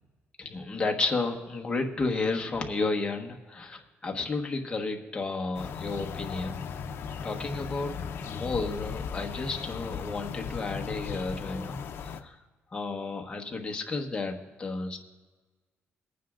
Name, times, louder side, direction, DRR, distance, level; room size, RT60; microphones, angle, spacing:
voice 1, 0.4-6.6 7.2-7.9 8.2-12.4 12.7-15.0, left 3 dB, 20° left, 1 dB, 1.3 m, -32 dB
sound 1, 5.5-12.2, left 6 dB, 60° left, 0.7 m, -37 dB
24.0 x 9.4 x 2.5 m, 1.3 s
cardioid pair, 135°, 5 cm